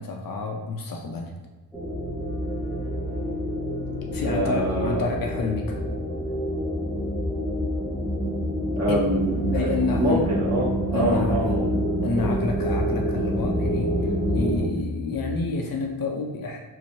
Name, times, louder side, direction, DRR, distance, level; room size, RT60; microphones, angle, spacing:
voice 1, 0.0-1.4 4.1-5.9 8.9-9.1 9.5-10.2 10.9-11.6 12.0-16.6, left 3 dB, 50° left, 1 dB, 0.5 m, -29 dB
sound 1, 1.7-14.7, equal, ahead, 0.5 m, -27 dB
sound 2, 1.8-15.5, left 1 dB, 85° left, 1.2 m, -37 dB
voice 2, 4.2-5.1 8.8-11.7 12.1-12.2, right 1 dB, 35° right, -5 dB, 1.0 m, -25 dB
2.7 x 2.0 x 2.9 m, 1.1 s
cardioid pair, 65°, 44 cm